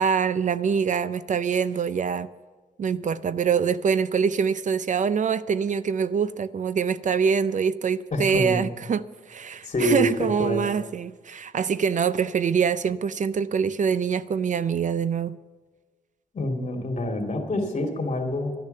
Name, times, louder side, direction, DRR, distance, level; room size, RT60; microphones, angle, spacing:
voice 1, 0.0-2.3 2.8-15.4, right 6 dB, 55° right, 0.5 m, -24 dB
voice 2, 8.1-8.6 9.6-10.7 16.3-18.5, left 1 dB, 50° left, 2.7 m, -26 dB
12.0 x 10.5 x 6.6 m
wide cardioid pair, 110°, 16 cm